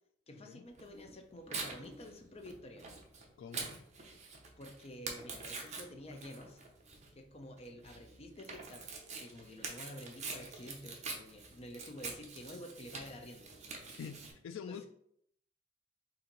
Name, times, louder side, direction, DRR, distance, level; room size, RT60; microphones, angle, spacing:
voice 1, 0.3-2.8 4.6-6.6 7.1-8.9 9.2-13.5 14.7-14.9, left 1 dB, 30° left, 4 dB, 0.6 m, -49 dB
Tearing, 0.8-14.3, right 4 dB, 35° right, 0.7 m, -46 dB
voice 2, 3.4-3.7 13.9-14.9, left 6 dB, 85° left, 8 dB, 0.3 m, -45 dB
4.3 x 2.8 x 3.9 m, 0.69 s
head